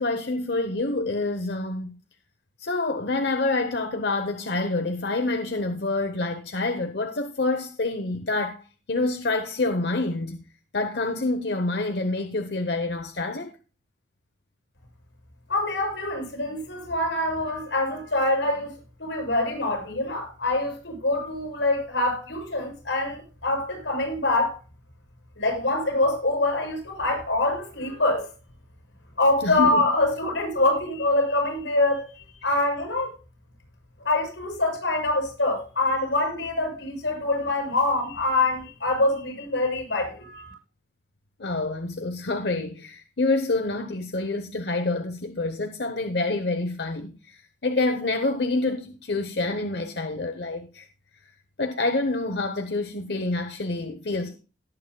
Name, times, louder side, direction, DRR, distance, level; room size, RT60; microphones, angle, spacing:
voice 1, 0.0-2.0 2.6-10.4 10.7-13.5 29.4-29.9 32.5-32.6 41.4-50.9 51.6-54.3, left 2 dB, 65° left, 0.9 m, -27 dB
voice 2, 15.5-24.6 25.4-28.3 29.2-32.1 32.4-33.1 34.0-40.5, left 2 dB, 85° left, 7.3 m, -25 dB
18.5 x 8.9 x 2.2 m
head